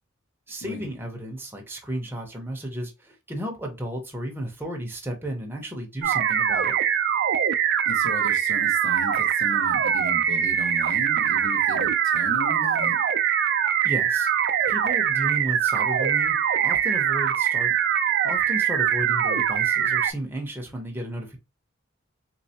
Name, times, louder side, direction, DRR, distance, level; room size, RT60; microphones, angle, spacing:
voice 1, 0.5-6.7 13.8-14.3 14.7-16.3 16.6-17.7 18.2-21.4, right 1 dB, 10° right, 0.6 m, -33 dB
sound 1, 6.0-20.1, right 9 dB, 55° right, 0.4 m, -23 dB
voice 2, 7.8-13.0, left 1 dB, 80° left, 1.5 m, -36 dB
3.2 x 3.2 x 2.8 m
head